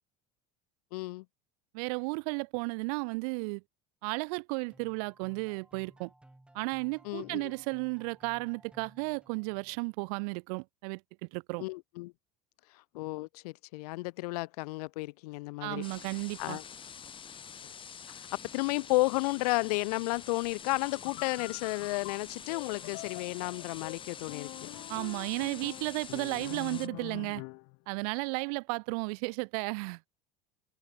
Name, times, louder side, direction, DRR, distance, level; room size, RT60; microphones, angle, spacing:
voice 1, 0.9-1.2 7.0-7.4 11.6-12.1 12.9-15.8 16.4-16.6 18.1-18.3 18.5-24.5, left 23 dB, 85° left, 1.9 m, -32 dB
voice 2, 1.7-3.6 4.0-6.1 6.5-11.6 15.6-16.6 24.9-27.4 27.9-30.0, right 32 dB, 75° right, 1.9 m, -34 dB
sound 1, 4.7-9.9, right 1 dB, 5° right, 3.1 m, -59 dB
sound 2, 15.8-26.9, left 7 dB, 25° left, 4.6 m, -47 dB
sound 3, 20.7-27.8, left 34 dB, 65° left, 1.0 m, -45 dB
supercardioid pair, 135°, 20 cm